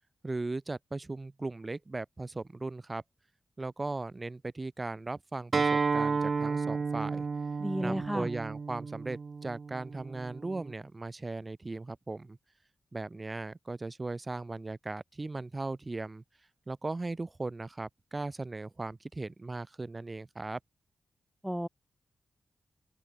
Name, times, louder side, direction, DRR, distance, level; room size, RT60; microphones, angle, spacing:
voice 1, 0.2-3.0 3.6-7.3 7.8-12.4 12.9-16.2 16.7-20.6, right 2 dB, 35° right, 3.5 m, -38 dB
Acoustic guitar, 5.5-10.7, right 4 dB, 55° right, 0.9 m, -32 dB
voice 2, 7.6-8.3 21.4-21.7, equal, 5° right, 0.8 m, -32 dB
cardioid pair, 55°, 0 cm